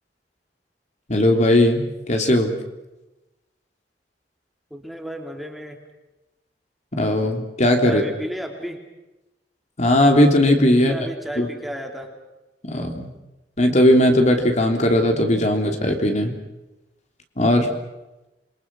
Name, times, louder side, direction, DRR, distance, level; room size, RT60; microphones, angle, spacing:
voice 1, 1.1-2.6 6.9-8.0 9.8-10.9 11.4-11.5 12.6-13.1 13.6-16.3 17.4-17.7, left 1 dB, 40° left, 4 dB, 3.2 m, -18 dB
voice 2, 4.7-5.8 7.8-8.8 10.8-12.1, equal, ahead, 3 dB, 3.0 m, -32 dB
27.5 x 23.5 x 6.2 m, 1.0 s
head